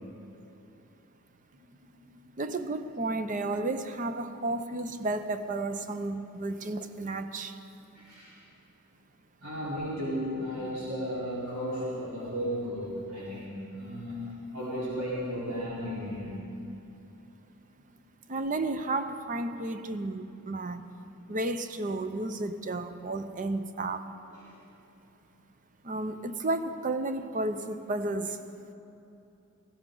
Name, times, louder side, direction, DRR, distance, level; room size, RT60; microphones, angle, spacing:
voice 1, 2.4-7.6 18.3-20.9 21.3-24.1 25.8-28.4, right 2 dB, 35° right, 9 dB, 0.6 m, -32 dB
voice 2, 7.9-8.3 9.4-16.4 24.5-24.6, equal, 80° right, -9 dB, 3.9 m, -34 dB
18.0 x 16.0 x 3.8 m, 2.8 s
head